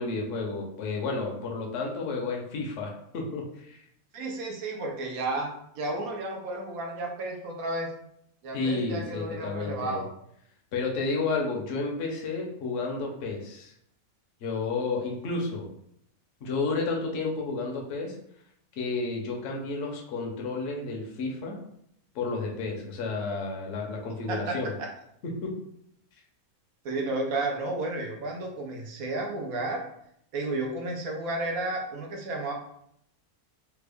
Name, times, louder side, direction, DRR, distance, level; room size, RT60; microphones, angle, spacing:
voice 1, 0.0-3.8 8.5-10.0 10.7-13.7 14.4-15.7 16.4-18.2 18.8-21.6 22.1-24.7 25.4-25.5, left 3 dB, 60° left, 0 dB, 0.9 m, -31 dB
voice 2, 4.1-7.9 8.4-10.1 24.3-24.9 26.8-29.9 30.3-32.5, right 2 dB, 70° right, 1 dB, 1.1 m, -32 dB
3.4 x 2.0 x 3.4 m, 0.72 s
omnidirectional pair, 1.6 m